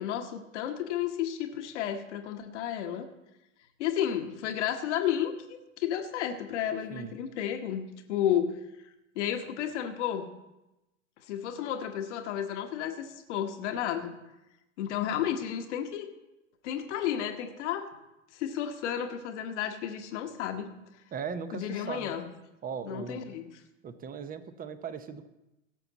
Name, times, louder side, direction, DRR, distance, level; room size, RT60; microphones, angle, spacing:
voice 1, 0.0-3.1 3.8-8.5 9.1-10.3 11.3-14.2 14.8-16.1 16.6-17.9 18.3-20.7 21.5-22.3 22.8-23.5, left 10 dB, 60° left, 6 dB, 1.3 m, -32 dB
voice 2, 21.1-22.1 22.6-23.3 23.8-25.3, right 6 dB, 20° right, 11 dB, 0.9 m, -38 dB
17.5 x 7.0 x 4.1 m, 0.96 s
hypercardioid pair, 95°, 39 cm